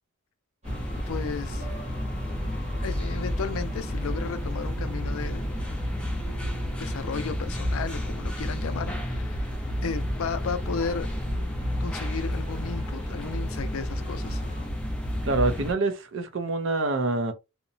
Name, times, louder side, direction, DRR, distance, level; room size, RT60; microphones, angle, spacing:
sound 1, 0.6-15.7, equal, 5° left, 0.4 m, -31 dB
sound 2, 0.6-14.7, equal, 30° right, 0.9 m, -45 dB
voice 1, 1.1-1.7 2.8-5.5 6.8-9.5 9.8-11.2 11.8-14.4, left 5 dB, 75° left, 0.4 m, -34 dB
sound 3, 1.6-13.5, equal, 80° right, 1.1 m, -40 dB
voice 2, 15.2-17.3, right 3 dB, 60° right, 0.5 m, -26 dB
2.8 x 2.0 x 2.6 m
head